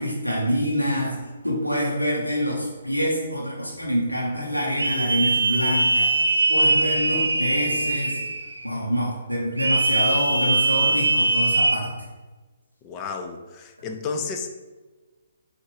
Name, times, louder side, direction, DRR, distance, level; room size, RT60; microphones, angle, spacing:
voice 1, 0.0-6.2 6.5-8.2 8.6-12.1, equal, 90° left, -2 dB, 0.8 m, -26 dB
sound 1, 4.8-8.6 9.6-11.8, right 2 dB, 75° right, 0.4 m, -22 dB
voice 2, 12.8-14.7, left 4 dB, 25° left, 5 dB, 0.4 m, -32 dB
5.8 x 2.5 x 3.3 m, 1.2 s
figure-of-eight pair, 130°, 0 cm